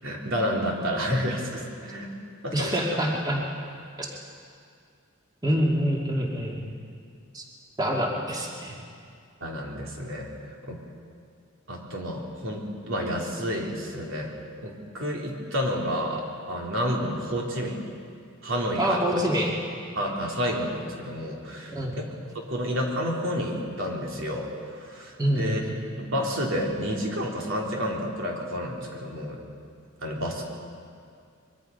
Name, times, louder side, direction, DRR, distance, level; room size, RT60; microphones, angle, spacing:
voice 1, 0.0-2.1 2.4-2.7 9.4-10.8 11.7-17.9 18.4-19.2 19.9-22.1 22.5-25.6 26.0-29.4 30.0-30.4, equal, 65° right, -1 dB, 3.3 m, -30 dB
voice 2, 2.5-3.4 4.0-4.1 5.4-6.6 7.3-7.4 7.8-8.8 18.8-19.5 21.7-22.0 25.2-25.7, equal, 20° right, -2 dB, 2.4 m, -26 dB
24.0 x 23.0 x 5.5 m, 2.3 s
head